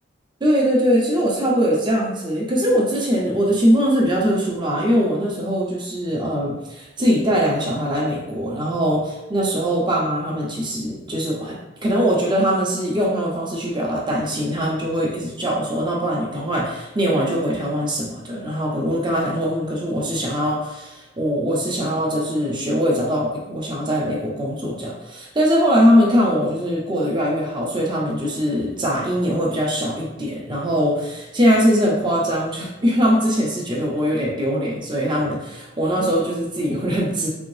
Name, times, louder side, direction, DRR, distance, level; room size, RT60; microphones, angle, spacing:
voice 1, 0.4-11.6 11.8-37.3, equal, 25° right, -3 dB, 0.8 m, -21 dB
3.7 x 3.6 x 2.6 m, 0.98 s
head